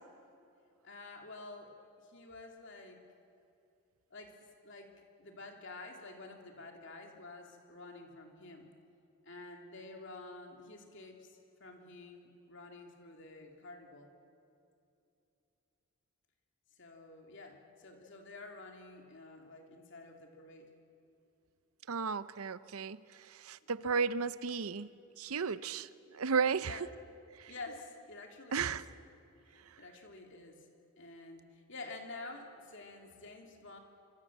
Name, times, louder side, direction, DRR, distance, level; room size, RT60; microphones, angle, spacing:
voice 1, 0.8-1.7 2.0-3.0 4.1-4.4 4.6-8.7 9.2-14.1 16.8-20.7 23.7-23.8 26.6-26.9 27.5-28.8 29.8-30.6 31.0-33.8, left 3 dB, 55° left, 2 dB, 3.0 m, -49 dB
voice 2, 21.9-26.9 27.4-27.5 28.5-28.8, right 5 dB, 75° right, 15 dB, 0.7 m, -34 dB
26.0 x 24.5 x 7.4 m, 2.7 s
head